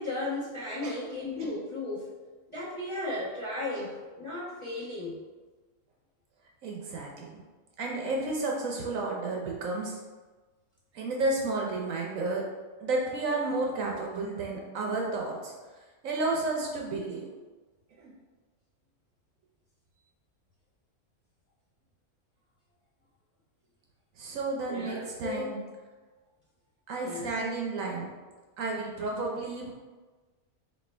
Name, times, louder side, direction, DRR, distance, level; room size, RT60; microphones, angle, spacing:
voice 1, 0.0-2.1 2.5-5.2 24.7-25.6 27.0-27.6, left 2 dB, 20° left, -9 dB, 1.1 m, -35 dB
voice 2, 6.6-7.4 7.8-10.0 10.9-12.4 12.8-15.5 16.0-17.3 18.0-18.1 24.2-25.6 26.9-28.1 28.6-29.7, right 3 dB, 70° right, -1 dB, 1.0 m, -32 dB
3.1 x 3.0 x 4.2 m, 1.3 s
omnidirectional pair, 1.5 m